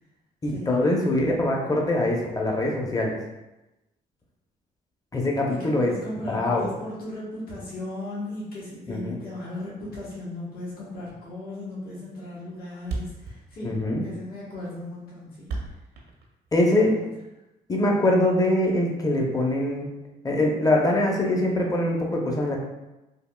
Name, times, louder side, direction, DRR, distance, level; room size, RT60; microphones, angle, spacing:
voice 1, 0.4-3.2 5.1-5.9 6.3-6.7 8.9-9.2 13.6-14.0 16.5-16.9 17.7-19.9 20.2-22.6, left 1 dB, 20° left, 0 dB, 0.7 m, -23 dB
voice 2, 5.5-15.5 16.6-17.1, left 1 dB, 65° left, -7 dB, 1.2 m, -37 dB
Thump thud, 11.5-11.7 11.9-12.0 12.3-12.4 12.6-12.7 12.8-16.9, right 3 dB, 80° right, 0.5 m, -35 dB
3.4 x 2.3 x 2.2 m, 1.0 s
cardioid pair, 70°, 17 cm